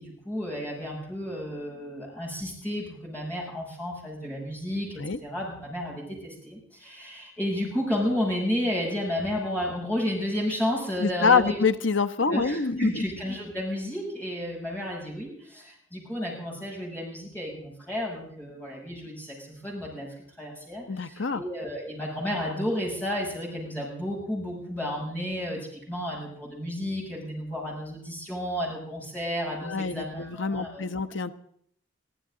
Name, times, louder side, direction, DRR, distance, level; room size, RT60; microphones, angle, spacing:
voice 1, 0.0-11.6 12.3-30.9, equal, 10° left, -3 dB, 7.0 m, -32 dB
voice 2, 11.0-13.0 20.9-21.4 29.6-31.3, left 5 dB, 70° left, 10 dB, 0.9 m, -25 dB
23.5 x 15.0 x 3.8 m, 0.66 s
head